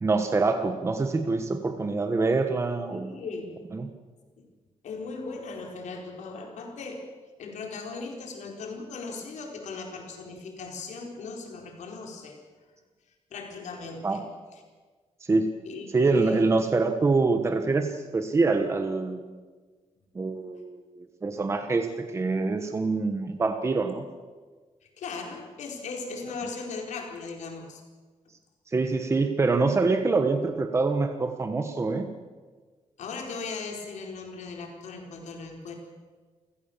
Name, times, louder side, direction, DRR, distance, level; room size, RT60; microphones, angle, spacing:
voice 1, 0.0-3.1 3.7-3.9 14.0-14.2 15.3-15.5 15.9-19.2 20.1-24.0 28.7-32.1, right 3 dB, 25° right, 6 dB, 1.2 m, -25 dB
voice 2, 2.9-3.6 4.4-4.5 4.8-7.0 7.4-12.4 13.3-14.2 14.5-14.6 15.6-16.4 20.3-20.5 25.0-27.8 33.0-35.7, left 4 dB, 90° left, 1 dB, 4.5 m, -38 dB
29.0 x 16.0 x 7.3 m, 1.4 s
wide cardioid pair, 175°, 12 cm